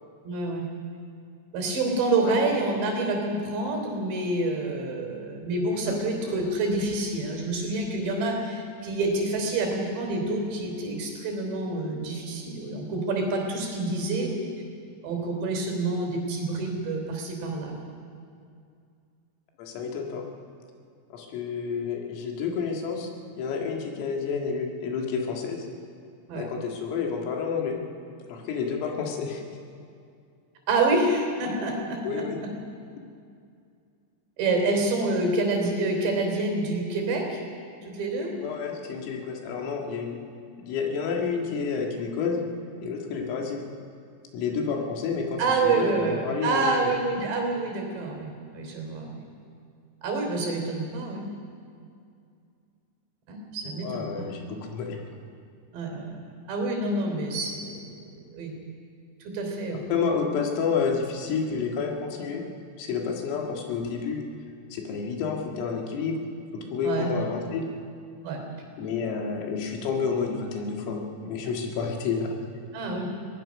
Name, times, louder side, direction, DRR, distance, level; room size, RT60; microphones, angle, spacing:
voice 1, 0.3-0.7 1.5-14.3 15.0-18.0 26.3-26.5 30.7-32.5 34.4-37.4 37.9-38.3 45.4-49.2 50.0-51.3 53.3-54.3 55.7-56.1 56.5-57.9 58.3-58.5 59.2-59.9 66.8-67.1 68.2-68.4 72.7-73.1, right 2 dB, 60° right, 2 dB, 5.4 m, -27 dB
voice 2, 19.6-20.2 21.1-23.1 23.4-25.7 26.3-27.8 28.3-29.5 32.0-32.4 38.4-40.2 40.6-42.4 42.8-43.7 44.3-46.9 53.8-55.0 59.9-62.4 62.8-64.3 64.7-66.2 66.5-67.7 68.8-72.3, left 5 dB, 80° left, 1 dB, 4.6 m, -30 dB
22.5 x 18.5 x 6.4 m, 2.4 s
omnidirectional pair, 5.9 m